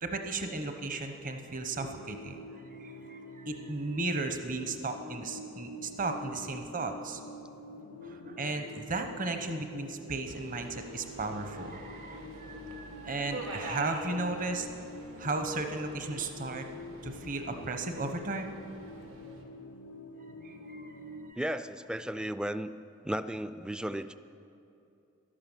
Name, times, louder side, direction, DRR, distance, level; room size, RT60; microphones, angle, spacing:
voice 1, 0.0-2.4 2.8-7.2 8.0-14.7 15.2-16.7 17.0-18.5 20.4-20.9 21.2-21.4, right 3 dB, 40° right, 6 dB, 0.9 m, -35 dB
sound 1, 1.7-21.3, left 1 dB, 85° left, 0.6 m, -46 dB
Subway metro underground, 10.3-19.4, right 2 dB, 80° right, 2.0 m, -46 dB
voice 2, 21.4-22.7 23.0-24.1, right 1 dB, 5° right, 12 dB, 0.3 m, -34 dB
12.0 x 11.5 x 7.3 m, 2.7 s
head